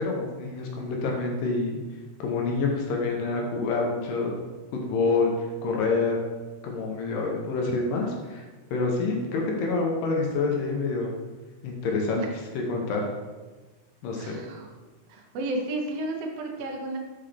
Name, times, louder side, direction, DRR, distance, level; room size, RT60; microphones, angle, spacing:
voice 1, 0.0-1.8 2.2-4.4 4.7-6.2 6.6-11.2 11.6-12.2 12.7-13.1 14.0-14.4, left 3 dB, 80° left, 0 dB, 2.4 m, -27 dB
voice 2, 14.2-14.7 15.1-17.0, right 2 dB, 75° right, 1 dB, 1.5 m, -32 dB
5.8 x 5.3 x 3.3 m, 1.2 s
omnidirectional pair, 4.0 m